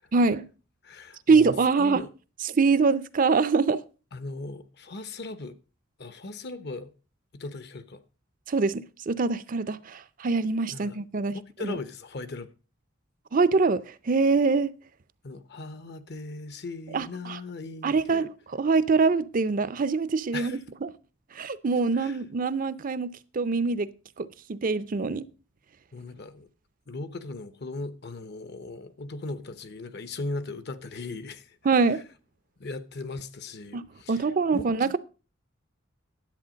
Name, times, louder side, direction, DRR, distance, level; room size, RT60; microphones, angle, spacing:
voice 1, 0.1-0.5 1.3-2.1 2.4-3.8 8.5-11.8 13.3-14.7 16.9-17.4 17.8-20.9 21.3-23.9 24.2-25.3 31.6-32.0 33.7-33.8 34.1-35.0, right 4 dB, 40° right, 0.5 m, -24 dB
voice 2, 0.8-1.5 1.8-2.1 4.1-5.6 6.0-6.9 7.3-8.0 10.7-11.0 11.6-12.5 15.2-18.3 20.3-20.6 21.9-22.2 25.9-26.5 26.9-31.6 31.9-32.0 32.6-35.0, left 3 dB, 55° left, 0.9 m, -38 dB
10.5 x 8.1 x 5.1 m
head